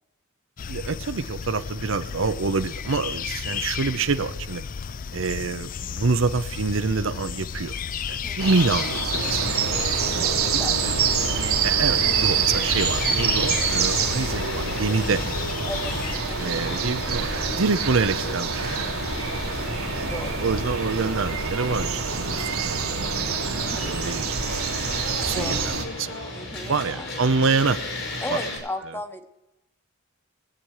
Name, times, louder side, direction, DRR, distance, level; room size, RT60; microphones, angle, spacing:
sound 1, 0.6-16.2, left 6 dB, 40° left, 0.4 m, -33 dB
voice 1, 0.7-4.6 5.1-7.8 8.1-9.4 10.1-10.3 10.8-10.9 11.6-15.2 16.4-19.2 19.9-22.9 23.6-24.7 25.2-25.7 26.0-26.2 26.5-27.8 28.3-28.4, right 4 dB, 65° right, 11 dB, 0.7 m, -26 dB
voice 2, 8.2-8.6 10.0-10.8 15.7-15.9 16.3-17.2 19.6-20.4 23.5-24.0 25.3-25.7 26.3-27.1 28.2-29.3, left 1 dB, 10° left, 7 dB, 1.1 m, -36 dB
sound 2, 8.4-25.8, right 6 dB, 80° right, 1.8 m, -26 dB
sound 3, 9.1-28.6, left 1 dB, 60° left, 5.6 m, -34 dB
20.5 x 8.9 x 4.8 m, 0.95 s
head